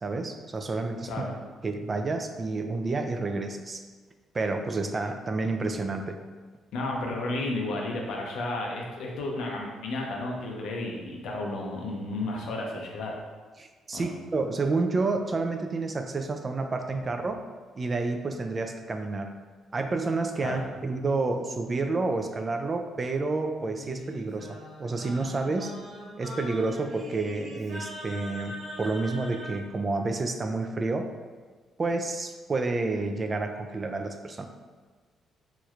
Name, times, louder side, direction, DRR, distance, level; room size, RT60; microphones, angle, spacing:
voice 1, 0.0-1.2 1.6-3.8 4.3-6.2 13.6-17.4 17.8-19.3 19.7-25.7 26.2-31.1 31.8-34.5, right 3 dB, 35° right, 5 dB, 0.3 m, -29 dB
voice 2, 6.7-13.2 13.9-14.1 20.4-20.6, left 2 dB, 80° left, -1 dB, 0.6 m, -32 dB
Singing, 23.6-29.6, equal, 80° right, 1.0 m, -42 dB
3.1 x 3.0 x 2.4 m, 1.4 s
cardioid pair, 90°, 0 cm